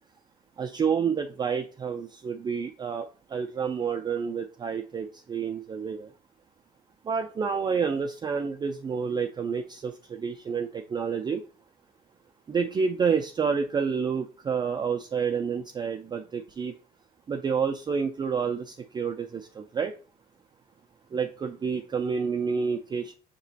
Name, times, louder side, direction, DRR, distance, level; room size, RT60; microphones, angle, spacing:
voice 1, 0.6-6.1 7.1-11.4 12.5-16.7 17.3-19.9 21.1-23.1, right 6 dB, 25° right, 4 dB, 0.3 m, -29 dB
6.4 x 3.0 x 2.7 m, 0.36 s
cardioid pair, 110°, 17 cm